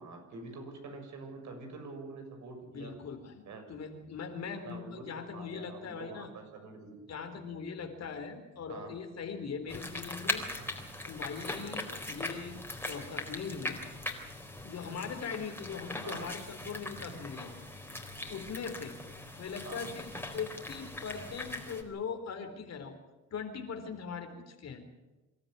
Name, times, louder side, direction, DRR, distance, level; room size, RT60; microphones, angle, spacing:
voice 1, 0.0-2.9 3.5-3.6 4.6-4.9 5.3-6.9 8.7-8.9 10.6-10.7 16.0-16.3 19.6-20.2, right 3 dB, 70° right, 4 dB, 7.0 m, -46 dB
voice 2, 2.7-3.4 3.7-6.3 7.1-10.4 11.0-13.8 14.6-17.5 18.3-19.0 19.4-23.0 23.3-24.8, left 6 dB, 60° left, 6 dB, 4.1 m, -40 dB
sound 1, 9.7-21.8, left 1 dB, 5° left, 4.1 m, -40 dB
26.0 x 13.0 x 9.6 m, 1.1 s
cardioid pair, 90°, 30 cm